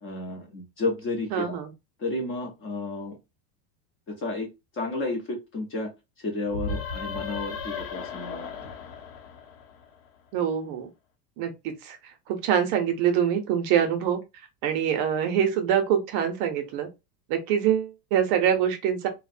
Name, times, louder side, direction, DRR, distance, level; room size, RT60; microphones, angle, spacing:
voice 1, 0.0-1.5 2.0-3.2 4.1-4.5 4.7-5.9 6.2-8.7, left 2 dB, 25° left, 0.5 m, -32 dB
voice 2, 1.3-1.7 10.3-10.9 11.4-12.0 12.3-14.2 14.6-16.9 17.3-19.1, right 9 dB, 45° right, 0.5 m, -25 dB
sound 1, 6.5-10.1, left 4 dB, 85° left, 0.8 m, -35 dB
2.5 x 2.1 x 2.4 m
supercardioid pair, 150°, 48 cm